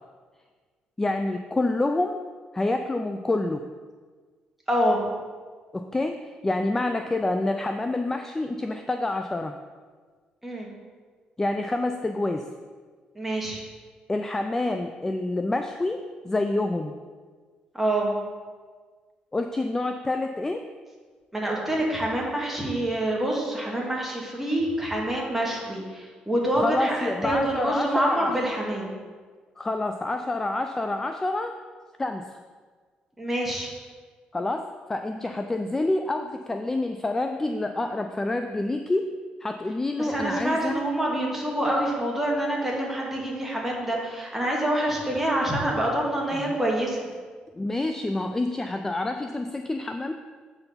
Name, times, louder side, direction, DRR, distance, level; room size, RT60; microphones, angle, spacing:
voice 1, 1.0-2.2 2.5-3.6 5.7-6.2 6.4-9.5 11.4-12.5 14.1-16.9 19.3-20.6 26.5-28.3 29.6-31.5 32.0-32.2 34.3-39.1 39.4-40.7 46.3-46.6 47.5-50.1, left 2 dB, 15° left, 6 dB, 0.4 m, -27 dB
voice 2, 4.7-5.0 10.4-10.7 13.2-13.6 17.7-18.1 21.3-28.9 33.2-33.7 40.0-47.0, right 1 dB, 5° right, -3 dB, 2.0 m, -26 dB
7.8 x 4.5 x 5.5 m, 1.5 s
cardioid pair, 100°, 3 cm